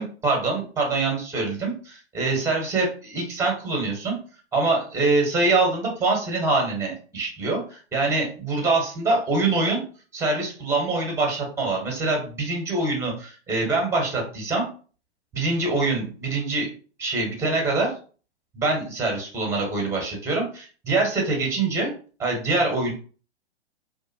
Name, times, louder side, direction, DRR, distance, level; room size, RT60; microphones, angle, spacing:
voice 1, 0.0-4.1 4.5-9.8 10.1-14.6 15.3-16.7 17.0-17.9 18.5-21.9 22.2-22.9, right 3 dB, 10° right, 0 dB, 1.0 m, -24 dB
2.6 x 2.3 x 2.8 m, 0.39 s
figure-of-eight pair, 110°, 33 cm